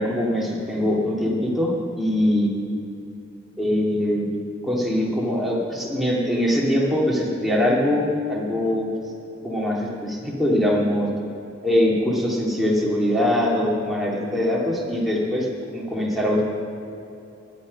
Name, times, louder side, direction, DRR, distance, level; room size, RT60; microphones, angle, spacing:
voice 1, 0.0-2.5 3.6-4.3 4.6-8.9 9.4-11.1 11.6-15.5 15.7-16.4, left 1 dB, ahead, -5 dB, 2.3 m, -22 dB
19.0 x 9.7 x 5.2 m, 2.7 s
head